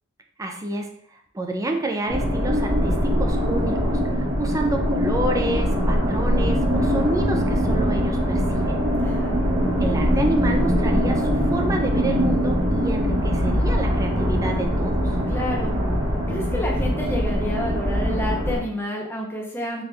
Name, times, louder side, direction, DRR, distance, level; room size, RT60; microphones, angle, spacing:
voice 1, 0.4-0.9 1.3-8.8 9.8-15.1, right 2 dB, 15° right, 3 dB, 0.4 m, -29 dB
sound 1, 2.1-18.6, equal, 75° right, 1.1 m, -22 dB
voice 2, 9.0-9.4 15.3-15.7 16.3-19.8, left 1 dB, 10° left, -2 dB, 0.7 m, -29 dB
4.2 x 2.4 x 3.4 m, 0.67 s
head